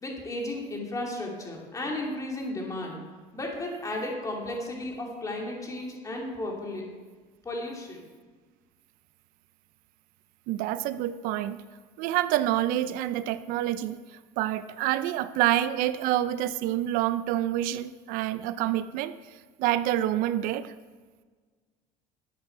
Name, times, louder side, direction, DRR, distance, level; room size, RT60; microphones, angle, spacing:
voice 1, 0.0-3.0 3.3-6.9 7.4-8.1, left 1 dB, 20° left, -1 dB, 2.7 m, -34 dB
voice 2, 10.5-11.6 12.0-20.7, right 13 dB, 70° right, 13 dB, 0.5 m, -27 dB
12.0 x 8.2 x 4.6 m, 1.5 s
cardioid pair, 115°, 15 cm